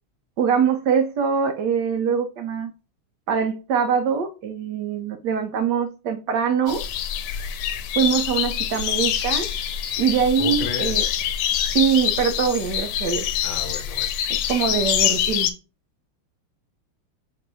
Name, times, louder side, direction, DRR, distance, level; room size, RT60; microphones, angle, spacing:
voice 1, 0.4-2.7 3.3-6.8 8.0-9.5 10.0-11.0 11.7-13.3 14.5-15.5, right 7 dB, 70° right, 1.0 m, -23 dB
sound 1, 6.7-15.5, left 10 dB, 85° left, 1.5 m, -25 dB
voice 2, 10.4-11.0 13.4-14.1, left 6 dB, 70° left, 1.5 m, -33 dB
4.3 x 2.5 x 4.7 m
omnidirectional pair, 2.4 m